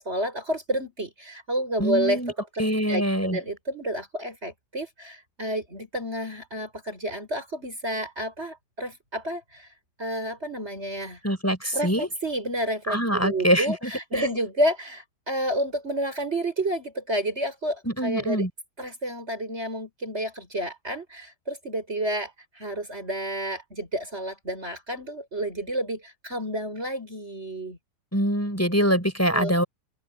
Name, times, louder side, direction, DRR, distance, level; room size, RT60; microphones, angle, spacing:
voice 1, 0.0-2.2 2.6-9.7 10.0-11.2 11.7-18.5 18.8-27.8 29.3-29.5, right 1 dB, 35° right, 6.6 m, -30 dB
voice 2, 1.8-2.3 2.6-3.4 11.2-12.1 12.9-13.9 14.2-14.3 17.8-18.5 28.1-29.6, equal, 10° left, 6.1 m, -24 dB
open air
omnidirectional pair, 1.9 m